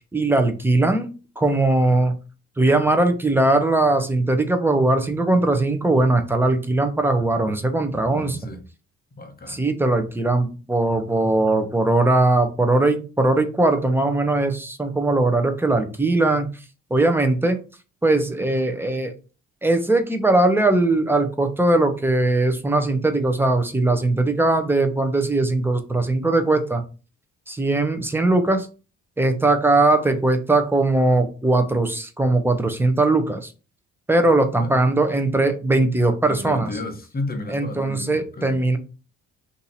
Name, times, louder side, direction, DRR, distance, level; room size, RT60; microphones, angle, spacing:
voice 1, 0.1-1.1 1.4-2.1 2.6-8.4 9.5-16.5 16.9-17.6 18.0-19.1 19.6-26.8 27.5-28.7 29.2-33.5 34.1-36.7 37.5-38.8, right 2 dB, 5° right, 0.6 m, -20 dB
voice 2, 8.1-8.6 9.2-9.6 34.6-34.7 36.3-38.6, left 2 dB, 30° left, 0.9 m, -33 dB
2.8 x 2.6 x 4.0 m
cardioid pair, 90°, 30 cm